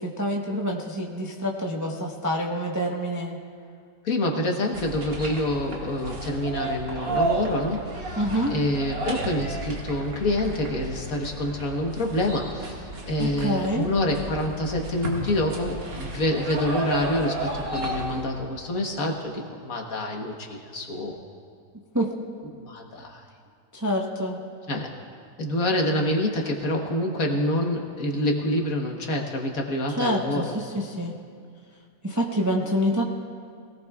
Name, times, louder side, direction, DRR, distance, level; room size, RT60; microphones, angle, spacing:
voice 1, 0.0-3.4 8.2-8.5 13.2-13.8 21.9-22.1 23.7-24.4 30.0-31.1 32.0-33.0, equal, 15° right, -1 dB, 0.7 m, -26 dB
voice 2, 4.0-8.2 8.5-21.2 22.6-23.2 24.7-24.9 25.4-30.6, left 1 dB, 55° left, 1 dB, 1.6 m, -27 dB
sound 1, 4.7-18.3, right 2 dB, 85° right, 2.6 m, -33 dB
23.0 x 17.5 x 2.4 m, 2.2 s
omnidirectional pair, 1.9 m